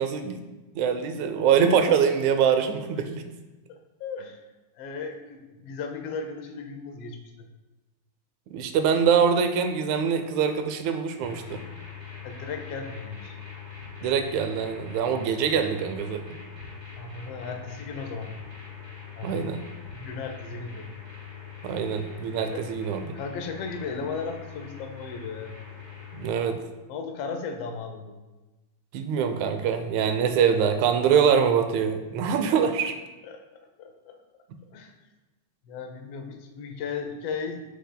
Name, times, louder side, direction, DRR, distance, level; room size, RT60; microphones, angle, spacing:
voice 1, 0.0-3.2 8.5-11.6 14.0-16.2 19.2-19.6 21.6-23.1 26.1-26.6 28.9-33.0, right 7 dB, 80° right, 8 dB, 1.9 m, -24 dB
voice 2, 3.7-4.4 4.8-7.5 12.2-13.4 17.0-18.4 19.2-19.4 19.9-20.9 22.4-22.7 23.1-25.5 26.9-28.1 33.2-34.2 34.7-34.9 35.7-37.6, left 5 dB, 80° left, 4 dB, 1.3 m, -36 dB
sound 1, 11.2-26.3, left 7 dB, 25° right, 1.1 m, -43 dB
7.7 x 6.7 x 2.2 m, 1.1 s
omnidirectional pair, 3.4 m